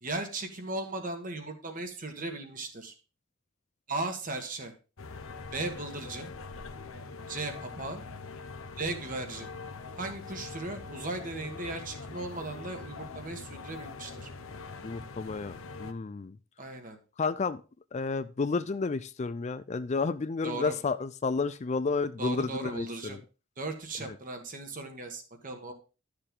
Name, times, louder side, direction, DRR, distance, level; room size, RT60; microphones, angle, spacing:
voice 1, 0.0-2.9 3.9-4.7 5.5-6.3 7.3-8.0 8.8-9.5 10.0-14.3 16.6-17.0 20.4-20.8 22.2-23.2 23.6-25.7, right 2 dB, 40° right, 5 dB, 1.7 m, -37 dB
sound 1, 5.0-15.9, left 4 dB, 80° left, 0.9 m, -43 dB
voice 2, 14.8-16.4 17.2-17.6 17.9-23.2 24.1-24.2, left 4 dB, 35° left, 13 dB, 0.4 m, -31 dB
12.0 x 6.7 x 3.8 m, 0.33 s
head